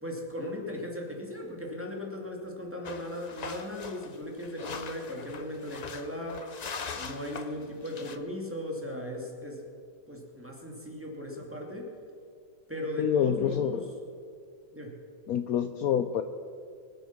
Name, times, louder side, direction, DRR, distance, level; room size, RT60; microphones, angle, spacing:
voice 1, 0.0-6.5 6.9-9.6 10.1-11.9 12.7-13.8 14.7-15.0, left 1 dB, 5° right, -2 dB, 2.2 m, -37 dB
sound 1, 2.8-8.2, left 5 dB, 85° left, 0.3 m, -41 dB
voice 2, 13.0-13.8 15.3-16.2, left 9 dB, 70° left, 9 dB, 1.0 m, -27 dB
24.0 x 8.1 x 5.9 m, 2.4 s
omnidirectional pair, 1.8 m